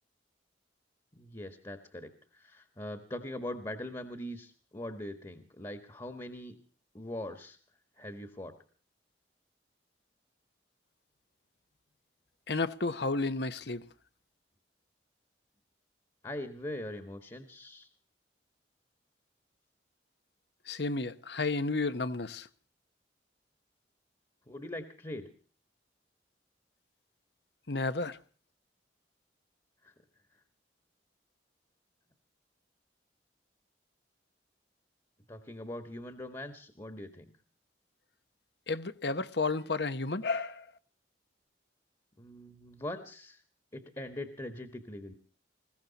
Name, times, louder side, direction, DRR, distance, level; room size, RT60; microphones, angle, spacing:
voice 1, 1.1-6.5 6.9-7.6 8.0-8.5 16.2-17.9 24.5-25.3 29.8-29.9 35.3-37.3 42.2-43.4 43.7-45.1, left 1 dB, 20° left, 1.5 m, -42 dB
voice 2, 12.5-13.9 20.7-22.5 27.7-28.2 38.7-40.7, left 3 dB, 65° left, 1.0 m, -32 dB
20.5 x 16.5 x 4.1 m
head